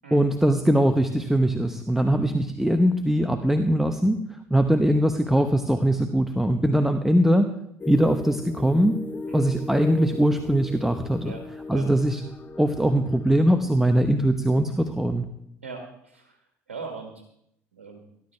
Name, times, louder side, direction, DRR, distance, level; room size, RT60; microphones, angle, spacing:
voice 1, 0.1-7.5 7.9-9.0 9.3-11.4 11.7-12.2 12.6-15.2, right 1 dB, 5° right, 6 dB, 1.1 m, -21 dB
sound 1, 7.8-13.7, left 3 dB, 30° left, 0.6 m, -37 dB
voice 2, 15.6-16.3 16.7-17.1 17.7-18.0, right 4 dB, 90° right, 3 dB, 1.5 m, -39 dB
18.0 x 11.5 x 3.4 m, 0.75 s
hypercardioid pair, 60°, 7 cm